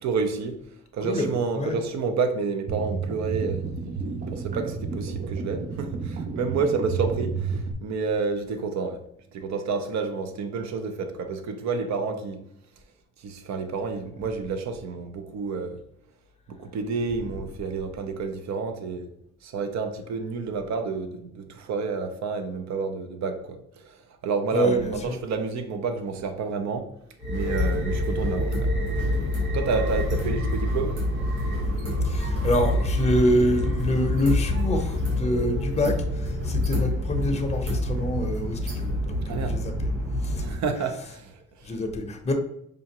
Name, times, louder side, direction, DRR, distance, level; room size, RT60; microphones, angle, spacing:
voice 1, 0.0-0.6 0.9-9.0 9.3-12.4 13.2-15.8 16.5-19.1 19.4-26.9 27.3-29.0 29.5-31.4 39.3-39.6 40.4-41.8, right 4 dB, 65° right, 0.7 m, -30 dB
voice 2, 1.0-1.8 24.5-25.2 32.0-39.9 40.2-40.4 41.6-42.3, equal, 20° left, 0.7 m, -26 dB
sound 1, 2.7-7.7, right 5 dB, 30° right, 0.4 m, -31 dB
sound 2, 27.2-40.5, left 1 dB, 90° right, 1.4 m, -26 dB
5.0 x 2.4 x 2.8 m
cardioid pair, 90°, 30 cm